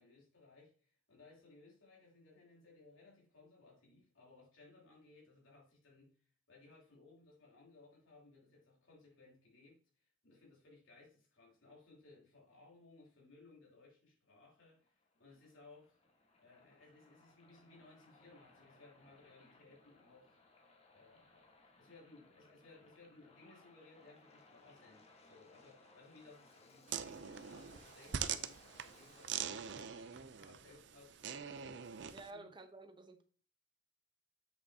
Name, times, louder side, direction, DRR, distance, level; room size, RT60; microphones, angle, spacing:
voice 1, 0.0-16.0 16.4-20.4 20.9-32.5, left 3 dB, 90° left, 3.3 m, -62 dB
Waves surf, 14.6-30.4, left 3 dB, 30° left, 1.4 m, -65 dB
sound 1, 26.9-32.3, right 8 dB, 60° right, 0.5 m, -43 dB
voice 2, 32.1-33.2, right 2 dB, 25° right, 0.9 m, -52 dB
7.7 x 6.7 x 2.8 m
head